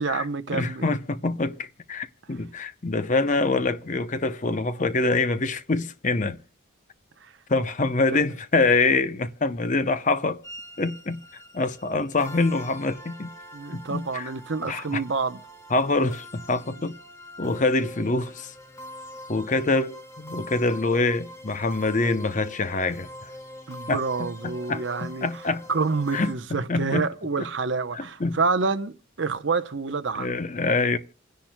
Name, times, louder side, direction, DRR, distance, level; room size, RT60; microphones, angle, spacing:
voice 1, 0.0-0.9 7.2-7.3 8.1-8.2 13.5-15.4 23.7-25.4 25.7-30.4, right 4 dB, 60° right, 0.8 m, -28 dB
voice 2, 0.5-6.4 7.5-10.4 10.8-11.2 11.5-13.3 13.7-14.3 14.6-15.0 15.7-17.0 17.4-18.5 19.3-23.1 23.9-25.7 26.1-26.3 26.7-27.1 27.9-28.4 30.1-31.0, left 3 dB, 35° left, 0.7 m, -25 dB
sound 1, 10.4-26.3, left 1 dB, 15° left, 1.6 m, -43 dB
28.5 x 10.5 x 2.2 m
head